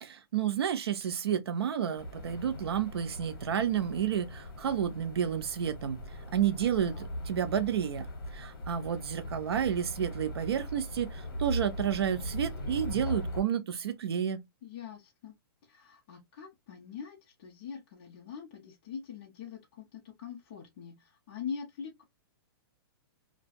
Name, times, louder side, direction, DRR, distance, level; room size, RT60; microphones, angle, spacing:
voice 1, 0.0-6.0 6.3-8.1 8.3-14.4, right 9 dB, 85° right, 0.6 m, -31 dB
sound 1, 2.0-13.4, left 1 dB, 60° left, 1.1 m, -40 dB
voice 2, 14.6-15.3 15.7-22.0, left 7 dB, 25° left, 0.6 m, -43 dB
2.3 x 2.3 x 2.5 m
hypercardioid pair, 180°, 13 cm